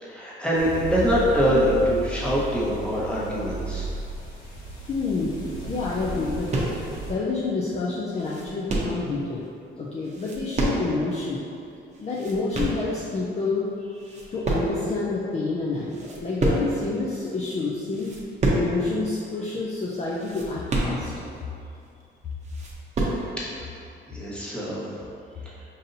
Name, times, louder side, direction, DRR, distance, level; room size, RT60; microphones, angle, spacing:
voice 1, 0.0-3.9 24.1-24.9 25.4-25.5, equal, 5° left, -8 dB, 1.1 m, -24 dB
sound 1, 0.5-7.1, right 2 dB, 80° left, 1.0 m, -34 dB
voice 2, 4.9-5.4 5.7-6.5 7.1-9.5 9.8-11.4 12.0-13.7 14.3-18.2 18.5-21.1, left 3 dB, 35° left, -5 dB, 0.5 m, -28 dB
sound 2, 6.5-6.9 7.5-7.6 7.9-9.0 10.0-11.1 11.4-11.5 11.9-12.9 13.5-13.7 14.0-15.0 15.3-15.4 15.8-16.9 17.4-17.5 17.9-18.8 19.1-19.2 19.5-19.6 20.1-21.4 21.8-21.9 22.2-23.3, right 2 dB, 35° right, 0.8 m, -27 dB
5.4 x 2.6 x 2.6 m, 2.5 s
cardioid pair, 90°, 20 cm